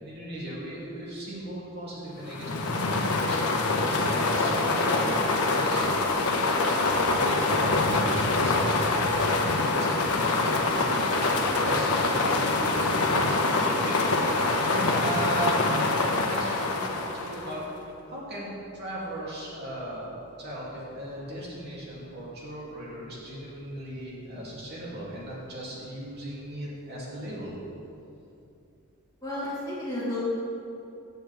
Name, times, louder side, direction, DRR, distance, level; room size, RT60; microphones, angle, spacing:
voice 1, 0.0-14.1 14.6-15.6 16.0-20.1 20.4-27.5, right 1 dB, 45° right, -6 dB, 2.8 m, -37 dB
sound 1, 2.2-17.7, left 2 dB, 90° left, 1.0 m, -25 dB
voice 2, 29.2-30.2, left 1 dB, 15° left, -8 dB, 2.3 m, -32 dB
16.0 x 8.0 x 3.5 m, 2.7 s
head